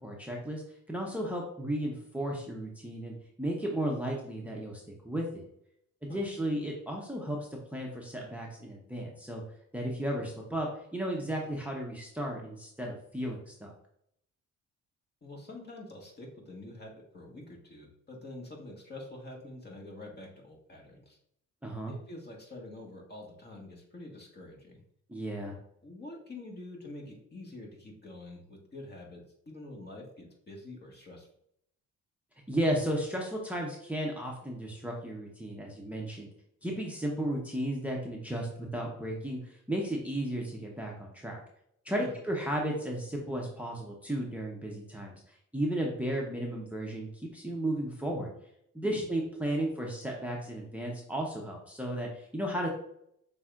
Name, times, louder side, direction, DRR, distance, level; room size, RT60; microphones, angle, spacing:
voice 1, 0.0-0.6 0.9-5.4 6.0-7.4 7.7-9.4 9.7-13.7 21.6-21.9 25.1-25.5 32.5-36.3 36.6-38.5 38.7-41.4 41.8-45.1 45.5-47.1 47.3-48.3 48.7-52.7, right 1 dB, 5° right, -1 dB, 0.8 m, -34 dB
voice 2, 15.2-21.2 21.9-24.8 25.8-31.3 41.9-42.2 48.8-49.0, left 2 dB, 35° left, -1 dB, 1.4 m, -46 dB
6.0 x 3.4 x 2.4 m, 0.72 s
cardioid pair, 90°, 30 cm